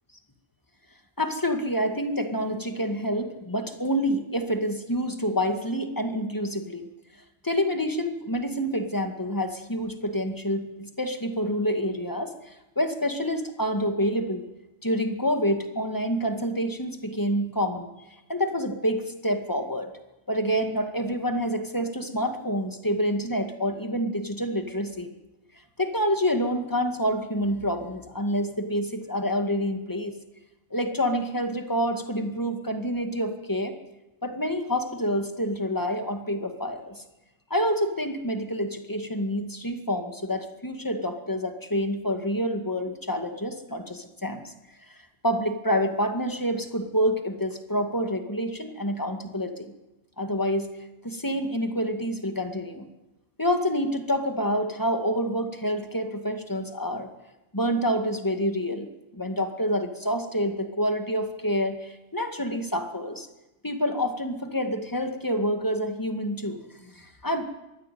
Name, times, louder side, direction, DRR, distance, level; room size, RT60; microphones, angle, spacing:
voice 1, 1.2-6.8 7.4-14.4 14.8-17.9 18.3-19.9 20.3-25.1 25.8-30.2 30.7-33.7 34.2-37.0 37.5-44.5 44.9-45.0 45.2-49.7 50.2-50.7 51.0-52.9 53.4-57.1 57.5-58.9 59.1-63.3 63.6-67.4, equal, 15° left, 6 dB, 2.1 m, -27 dB
23.0 x 16.0 x 9.4 m, 1.0 s
omnidirectional pair, 1.3 m